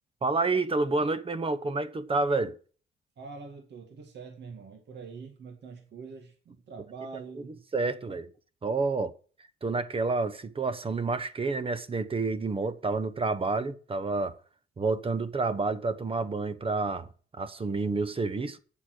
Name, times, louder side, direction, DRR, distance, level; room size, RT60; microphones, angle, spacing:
voice 1, 0.2-2.5 7.7-8.3 8.6-9.1 9.6-14.4 14.8-17.1 17.3-18.6, right 3 dB, 30° right, 1.0 m, -29 dB
voice 2, 3.2-7.5 8.1-8.2, right 5 dB, 60° right, 2.1 m, -44 dB
8.9 x 7.3 x 6.3 m
cardioid pair, 90°, 20 cm